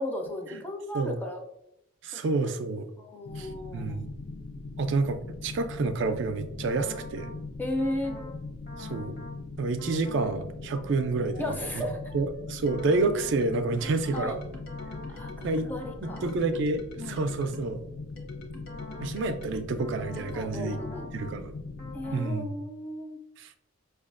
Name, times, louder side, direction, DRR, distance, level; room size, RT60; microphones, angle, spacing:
voice 1, 0.0-1.4 2.1-2.2 3.0-4.1 7.6-8.2 10.7-10.9 11.4-12.0 14.1-14.4 15.1-16.3 17.0-17.3 20.3-21.1 21.9-23.2, left 1 dB, 10° left, 2 dB, 0.4 m, -35 dB
voice 2, 2.0-2.9 3.4-4.1 4.8-7.3 8.8-9.2 9.6-11.8 12.1-14.4 15.4-15.7 16.0-17.8 19.0-20.8 21.1-21.5 22.1-22.6 23.4-23.5, right 3 dB, 65° right, 8 dB, 0.3 m, -29 dB
sound 1, 3.2-22.1, left 3 dB, 80° left, 0.5 m, -40 dB
sound 2, 6.7-7.4 7.8-8.4 8.7-9.4 9.8-10.4 10.7-17.8 18.2-21.4 21.8-22.4, left 3 dB, 50° left, 0.8 m, -45 dB
5.0 x 2.3 x 2.4 m, 0.82 s
head